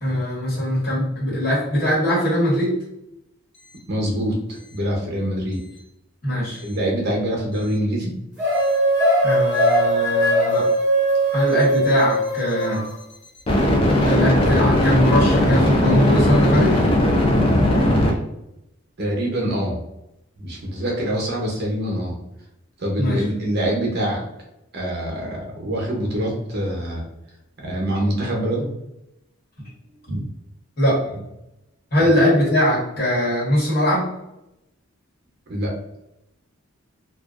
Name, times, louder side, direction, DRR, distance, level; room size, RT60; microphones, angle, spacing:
voice 1, 0.0-2.8 6.2-6.6 9.2-10.7 11.3-12.8 14.0-16.8 23.0-23.2 30.1-30.3 30.8-31.2 31.9-34.1, equal, 45° left, -7 dB, 1.2 m, -21 dB
voice 2, 3.9-5.6 6.6-8.1 19.0-19.8 20.4-22.1 22.8-24.2 24.7-27.0 27.6-28.7 35.5-35.7, right 1 dB, 50° right, -1 dB, 0.7 m, -24 dB
sound 1, 8.4-12.9, right 1 dB, 5° right, 0.8 m, -19 dB
sound 2, 8.6-8.8 13.5-18.1, left 1 dB, 25° left, 0.3 m, -18 dB
2.4 x 2.2 x 2.3 m, 0.87 s
head